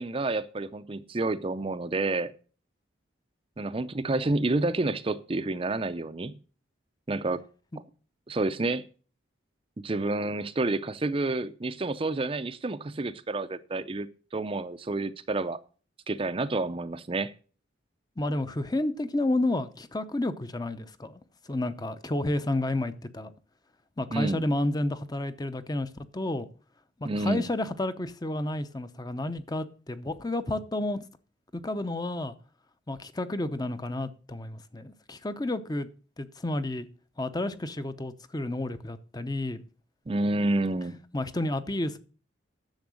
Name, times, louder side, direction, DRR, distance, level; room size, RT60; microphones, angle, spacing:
voice 1, 0.0-2.3 3.6-6.3 7.1-7.4 8.3-8.9 9.8-15.6 16.1-17.3 24.1-24.5 27.0-27.5 40.1-41.0, right 2 dB, 30° right, 0.5 m, -29 dB
voice 2, 18.2-21.2 21.5-23.3 24.0-26.5 27.0-31.0 31.5-32.3 32.9-35.9 36.2-36.9 37.2-39.6 41.1-42.0, left 1 dB, 20° left, 0.6 m, -31 dB
10.5 x 7.2 x 6.2 m
head